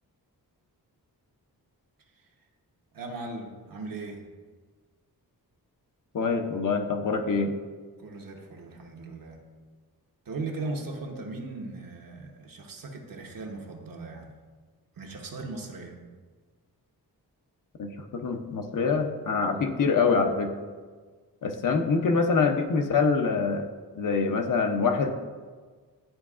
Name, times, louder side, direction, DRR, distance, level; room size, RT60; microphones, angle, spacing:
voice 1, 2.9-4.3 8.0-9.4 10.2-14.3 15.0-16.0 19.5-19.8, right 3 dB, 60° right, 1 dB, 1.1 m, -38 dB
voice 2, 6.1-7.5 17.8-20.5 21.4-23.7 24.0-25.1, left 4 dB, 55° left, 4 dB, 0.7 m, -25 dB
11.5 x 4.6 x 2.4 m, 1.5 s
wide cardioid pair, 120°, 38 cm